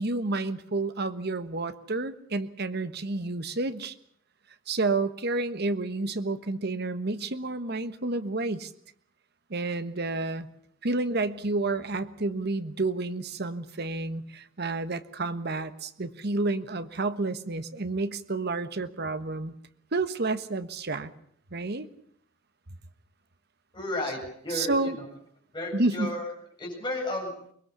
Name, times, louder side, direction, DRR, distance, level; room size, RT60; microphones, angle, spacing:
voice 1, 0.0-3.9 4.7-8.7 9.5-10.5 10.8-19.6 19.9-21.1 21.5-21.9 24.5-25.0 25.7-26.1, right 3 dB, 55° right, 11 dB, 1.3 m, -30 dB
voice 2, 23.7-25.1 25.5-26.3 26.6-27.3, left 1 dB, 25° left, -1 dB, 7.7 m, -33 dB
23.0 x 21.0 x 7.0 m, 0.64 s
head